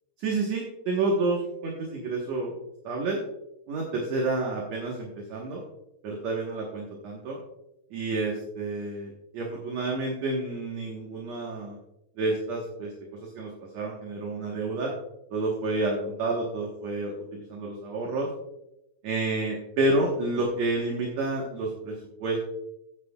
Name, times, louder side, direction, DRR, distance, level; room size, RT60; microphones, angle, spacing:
voice 1, 0.2-2.6 2.8-3.2 3.7-5.6 6.0-7.4 7.9-11.8 12.2-12.9 13.2-14.9 15.3-18.3 19.0-22.4, right 2 dB, 60° right, -2 dB, 2.2 m, -29 dB
14.5 x 9.3 x 2.3 m, 0.87 s
omnidirectional pair, 4.3 m